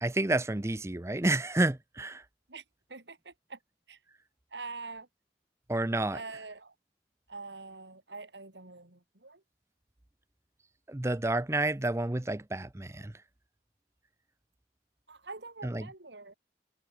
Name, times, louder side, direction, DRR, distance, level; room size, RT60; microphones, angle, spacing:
voice 1, 0.0-2.2 5.7-6.2 10.9-13.1 15.6-15.9, right 2 dB, 15° right, 0.6 m, -30 dB
voice 2, 2.9-3.6 3.9-4.0 4.5-5.1 6.1-6.7 7.3-9.4 15.1-16.3, right 3 dB, 85° right, 3.3 m, -45 dB
head